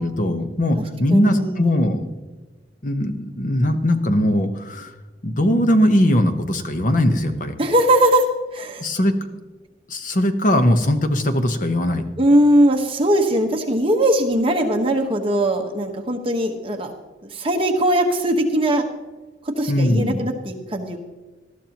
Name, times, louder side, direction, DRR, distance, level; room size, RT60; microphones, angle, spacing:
voice 1, 0.0-2.0 2.8-4.9 5.2-7.5 8.8-9.1 9.9-12.0 19.7-20.2, left 1 dB, 45° left, 7 dB, 1.0 m, -20 dB
voice 2, 1.1-1.7 7.6-8.3 8.5-8.8 12.2-16.9 17.3-18.8 19.6-21.0, right 1 dB, 30° right, 2 dB, 1.3 m, -19 dB
19.0 x 13.0 x 3.0 m, 1.2 s
head